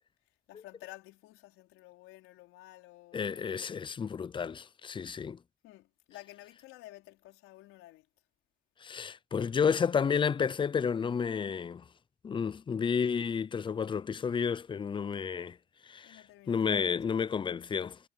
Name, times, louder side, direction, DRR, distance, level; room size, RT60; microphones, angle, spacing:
voice 1, 0.5-3.7 5.6-8.1 16.0-17.2, left 17 dB, 85° left, 4.5 m, -52 dB
voice 2, 3.1-5.4 8.8-11.8 12.2-15.6 15.9-18.0, left 6 dB, 25° left, 0.5 m, -31 dB
cardioid pair, 100°, 21 cm